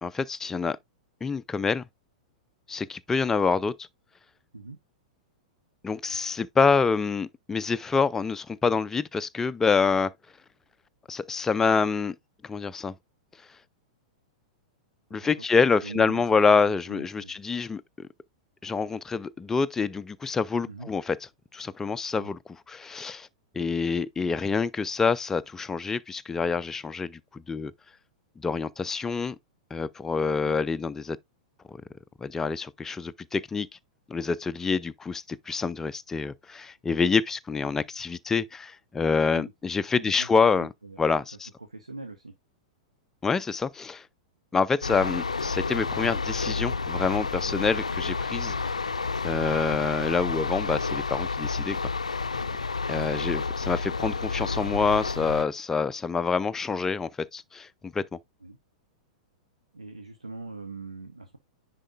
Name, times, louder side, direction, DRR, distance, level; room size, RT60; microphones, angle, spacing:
voice 1, 0.0-0.8 1.2-1.8 2.7-3.7 5.8-10.1 11.1-12.2 12.4-12.9 15.1-18.1 18.6-23.3 23.5-27.7 28.4-29.4 29.7-31.2 31.7-31.8 32.2-33.7 34.1-40.7 41.0-41.5 43.2-44.1 44.5-48.6 49.2-51.9 52.9-58.2, left 5 dB, 10° left, 0.4 m, -26 dB
voice 2, 15.1-16.2 16.5-16.6 16.9-17.4 20.7-20.9 22.2-22.3 30.2-30.6 39.3-39.5 39.9-41.0 41.6-42.3 49.2-49.5 53.0-53.4 58.4-58.6 59.7-61.4, right 3 dB, 85° right, 1.0 m, -42 dB
sound 1, 44.8-55.4, left 4 dB, 80° left, 0.4 m, -30 dB
10.0 x 4.1 x 2.5 m
figure-of-eight pair, 100°, 4 cm